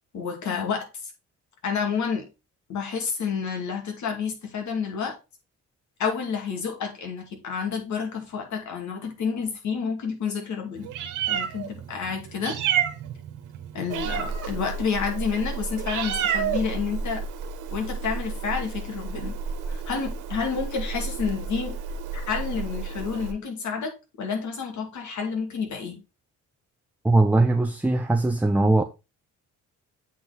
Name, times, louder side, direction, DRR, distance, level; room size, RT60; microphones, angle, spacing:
voice 1, 0.1-1.1 1.6-2.3 2.7-5.2 6.0-10.9 11.3-12.6 13.7-17.2 17.7-19.4 19.7-21.7 22.1-26.0, left 6 dB, 70° left, 2.5 m, -29 dB
Meow, 10.8-23.3, right 6 dB, 90° right, 1.3 m, -31 dB
voice 2, 27.0-28.8, right 2 dB, 5° right, 0.6 m, -20 dB
8.2 x 4.4 x 4.0 m
cardioid pair, 90°, 30 cm